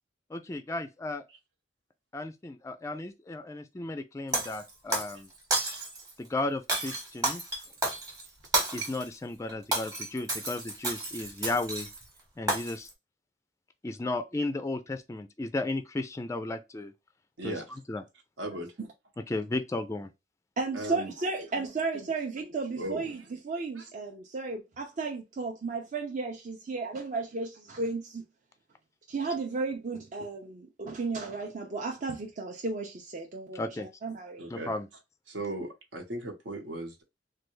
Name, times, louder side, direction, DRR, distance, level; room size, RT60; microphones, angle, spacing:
voice 1, 0.3-1.2 2.1-5.3 6.2-7.4 8.7-11.9 12.4-12.9 13.8-16.9 17.4-17.6 17.9-18.0 19.3-20.1 33.5-33.9 34.5-34.9, left 2 dB, 15° left, 0.3 m, -34 dB
Shatter, 4.3-5.2 5.5-6.1 6.7-9.1 9.5-12.0 12.5-12.9, right 2 dB, 20° right, 1.0 m, -31 dB
voice 2, 18.4-18.7 20.7-21.1 22.8-23.1 23.8-23.9 34.4-34.7 35.3-37.0, right 1 dB, 80° right, 1.0 m, -37 dB
voice 3, 20.6-28.2 29.1-34.5, right 3 dB, 45° right, 0.5 m, -34 dB
3.3 x 2.2 x 3.1 m
head